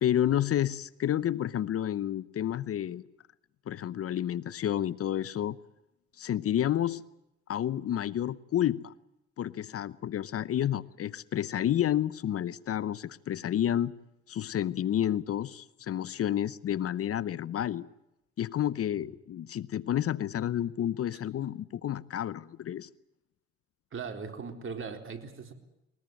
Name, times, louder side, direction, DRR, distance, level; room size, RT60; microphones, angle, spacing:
voice 1, 0.0-3.0 3.7-5.6 6.2-7.0 7.5-8.9 9.4-13.9 14.3-17.9 18.4-22.9, left 11 dB, 50° left, 18 dB, 0.8 m, -30 dB
voice 2, 23.9-25.5, right 5 dB, 45° right, 5 dB, 4.1 m, -39 dB
21.0 x 21.0 x 9.2 m, 0.89 s
supercardioid pair, 75°, 30 cm